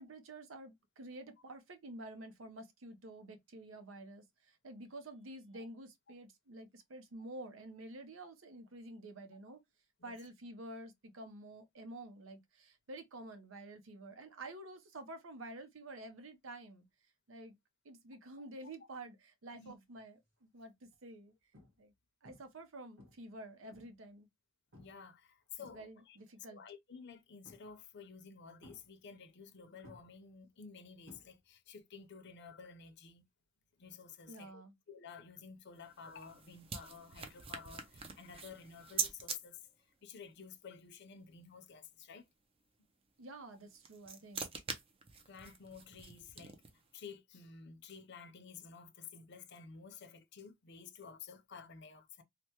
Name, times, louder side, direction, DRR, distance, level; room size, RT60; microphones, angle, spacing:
voice 1, 0.0-9.6 10.0-16.9 17.3-17.6 17.8-19.2 19.4-21.3 21.8-21.9 22.2-24.3 25.7-26.6 34.3-34.7 43.2-44.5, right 2 dB, 85° right, 0.7 m, -50 dB
sound 1, 19.9-20.2 20.8-20.9 21.5-22.0 22.2-22.7 23.0-24.1 24.7-25.1 25.4-26.3 27.4-28.0 28.6-29.5 29.8-31.7 32.0-32.4 34.5-34.6, left 1 dB, 65° right, 1.4 m, -60 dB
voice 2, 24.7-26.2 26.5-33.2 33.8-34.6 34.9-42.3 45.2-46.7 46.9-52.2, left 6 dB, 60° left, 0.6 m, -52 dB
sound 2, 35.7-39.4 43.5-46.9, right 5 dB, 30° right, 0.5 m, -43 dB
3.3 x 2.1 x 2.8 m
head